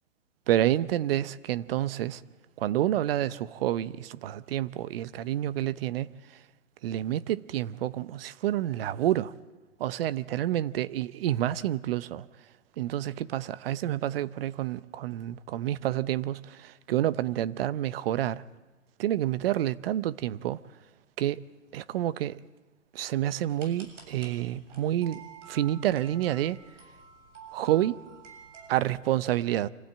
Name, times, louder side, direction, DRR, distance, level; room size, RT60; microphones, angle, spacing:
voice 1, 0.5-2.2 2.6-6.1 6.8-9.3 9.8-12.2 12.8-18.4 19.0-20.6 21.2-21.4 21.7-22.4 22.9-26.6 27.5-28.0 28.7-29.7, right 13 dB, 50° right, 0.8 m, -29 dB
sound 1, 23.5-28.8, right 6 dB, 65° right, 7.3 m, -49 dB
26.0 x 15.5 x 8.9 m
hypercardioid pair, 130°, 38 cm